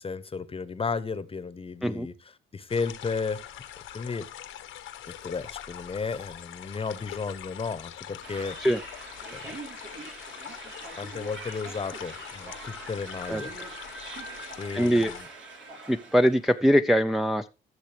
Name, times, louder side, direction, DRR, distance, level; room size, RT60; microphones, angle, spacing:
voice 1, 0.0-2.1 2.5-3.4 3.9-4.3 5.2-8.6 9.3-9.4 11.0-13.5 14.6-15.3, left 4 dB, 30° left, 0.9 m, -33 dB
sound 1, 2.7-15.2, left 11 dB, 90° left, 1.2 m, -43 dB
sound 2, 8.2-16.6, right 3 dB, 75° right, 3.6 m, -43 dB
voice 2, 14.7-15.1 15.9-17.5, equal, ahead, 0.4 m, -22 dB
15.0 x 6.6 x 3.3 m
cardioid pair, 90°, 20 cm